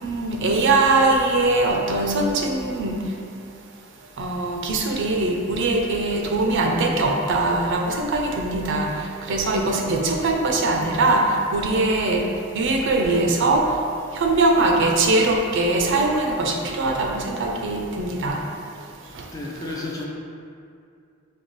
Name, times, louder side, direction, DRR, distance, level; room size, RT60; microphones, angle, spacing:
voice 1, 0.0-3.0 4.2-8.9 9.3-12.3 12.5-13.7 14.1-18.4 19.2-19.3, right 2 dB, 60° right, 1 dB, 0.5 m, -21 dB
voice 2, 19.3-20.0, left 2 dB, 20° left, -3 dB, 0.4 m, -32 dB
5.3 x 2.3 x 3.0 m, 2.4 s
head